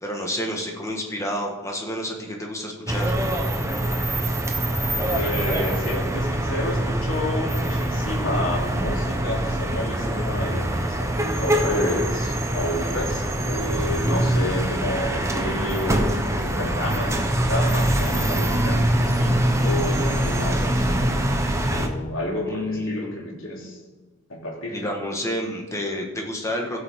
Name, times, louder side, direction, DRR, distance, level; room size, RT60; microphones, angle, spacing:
voice 1, 0.0-3.1 22.4-23.4 24.7-26.8, left 1 dB, 15° left, 1 dB, 1.5 m, -29 dB
sound 1, 2.9-21.9, right 1 dB, 15° right, 0.9 m, -24 dB
voice 2, 5.1-21.1 21.7-23.8 24.3-24.8, left 1 dB, 75° left, -2 dB, 2.8 m, -30 dB
16.0 x 7.0 x 3.7 m, 1.3 s
head